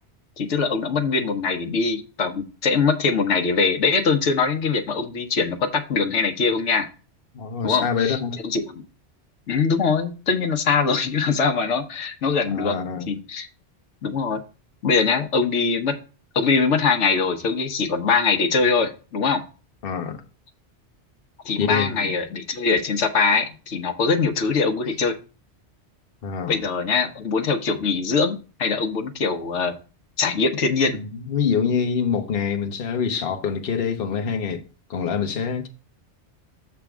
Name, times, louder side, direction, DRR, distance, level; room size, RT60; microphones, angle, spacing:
voice 1, 0.4-6.9 7.6-8.6 9.5-12.8 13.1-13.5 14.0-14.4 14.8-15.9 16.3-19.4 21.4-25.1 26.5-29.7 30.2-31.0, left 5 dB, 85° left, 1.2 m, -22 dB
voice 2, 7.3-8.4 12.5-13.1 19.8-20.2 21.6-22.2 26.2-26.6 30.9-34.6 34.9-35.7, left 6 dB, 55° left, 1.0 m, -25 dB
7.3 x 3.5 x 6.0 m
omnidirectional pair, 1.2 m